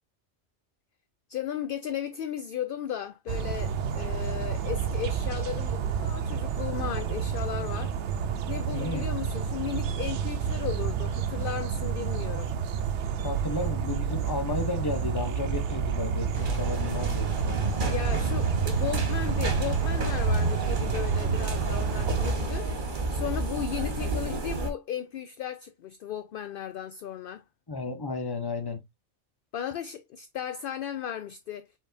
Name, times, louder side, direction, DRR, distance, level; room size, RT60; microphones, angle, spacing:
voice 1, 1.3-7.9 8.5-12.5 17.9-22.7 23.1-27.4 29.5-31.7, left 9 dB, 60° left, 0.6 m, -35 dB
sound 1, 3.3-22.4, right 7 dB, 80° right, 0.9 m, -30 dB
voice 2, 8.7-9.1 13.2-17.6 27.7-28.8, left 3 dB, 20° left, 1.0 m, -33 dB
sound 2, 16.3-24.7, right 3 dB, 45° right, 1.3 m, -29 dB
5.0 x 4.1 x 2.5 m
omnidirectional pair, 1.2 m